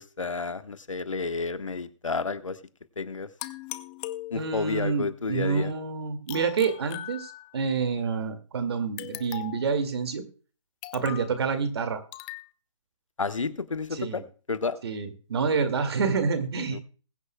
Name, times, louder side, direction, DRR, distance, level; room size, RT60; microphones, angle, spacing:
voice 1, 0.0-2.6 3.0-3.3 4.3-5.7 13.2-14.2 14.5-14.8 16.7-16.8, left 4 dB, 80° left, 12 dB, 1.2 m, -31 dB
sound 1, 3.4-4.8 6.3-7.7 9.0-9.7 10.8-11.3 12.1-12.5, left 16 dB, 20° left, 0.5 m, -39 dB
voice 2, 4.3-10.3 10.9-12.0 13.9-14.2 14.8-16.8, right 5 dB, 55° right, 8 dB, 2.1 m, -28 dB
21.0 x 9.8 x 2.2 m, 0.39 s
figure-of-eight pair, 145°, 16 cm